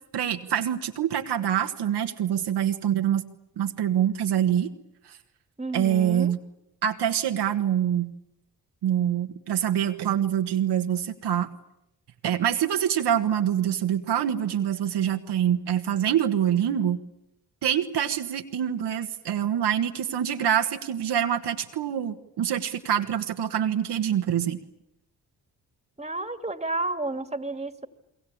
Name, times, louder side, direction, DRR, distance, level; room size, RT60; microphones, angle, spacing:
voice 1, 0.1-3.2 3.6-4.7 5.1-5.2 5.7-6.4 6.8-8.1 8.8-11.5 12.2-17.0 17.6-24.6, right 10 dB, 70° right, 5 dB, 1.6 m, -25 dB
voice 2, 5.6-6.3 26.0-27.9, right 2 dB, 15° right, 9 dB, 2.4 m, -31 dB
29.0 x 22.0 x 8.7 m, 0.86 s
hypercardioid pair, 45°, 41 cm